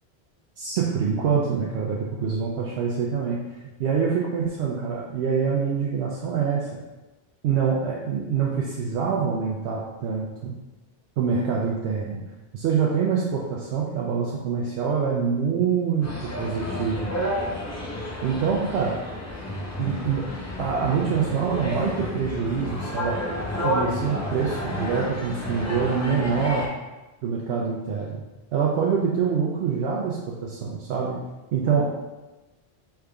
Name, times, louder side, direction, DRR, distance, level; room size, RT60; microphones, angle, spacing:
voice 1, 0.6-3.4 3.8-6.7 7.4-10.6 11.2-12.2 12.5-17.1 18.2-19.0 19.8-20.3 20.6-23.2 23.6-26.7 27.2-28.2 28.5-31.2 31.5-31.9, right 6 dB, 90° right, -3 dB, 0.8 m, -25 dB
sound 1, 16.0-26.7, left 1 dB, 20° left, 0.5 m, -31 dB
4.8 x 3.5 x 2.3 m, 1.1 s
omnidirectional pair, 1.1 m